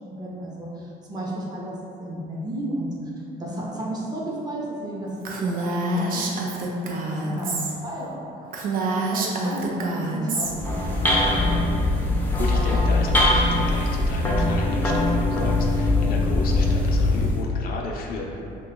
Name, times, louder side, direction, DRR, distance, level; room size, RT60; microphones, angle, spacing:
voice 1, 0.0-2.9 3.4-11.1 11.3-11.5, right 1 dB, 25° right, -5 dB, 0.7 m, -33 dB
Female speech woman speaking, 5.2-7.7 8.1-8.2 8.5-10.5, right 2 dB, 55° right, 0.4 m, -27 dB
sound 1, 10.5-17.4, left 2 dB, 10° left, 0.5 m, -21 dB
voice 2, 12.4-18.4, left 3 dB, 60° left, -1 dB, 0.4 m, -33 dB
2.8 x 2.3 x 3.7 m, 2.7 s
cardioid pair, 110°, 17 cm